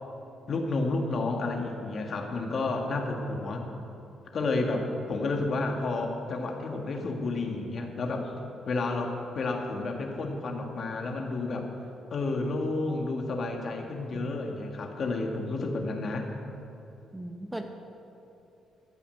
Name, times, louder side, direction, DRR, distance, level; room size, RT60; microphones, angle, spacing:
voice 1, 0.5-3.7 4.3-8.3 8.7-11.7 12.1-16.3, left 3 dB, 50° left, 2 dB, 1.7 m, -31 dB
voice 2, 17.1-17.6, right 1 dB, 10° right, 5 dB, 0.9 m, -37 dB
13.5 x 5.7 x 9.2 m, 2.8 s
cardioid pair, 90°, 0 cm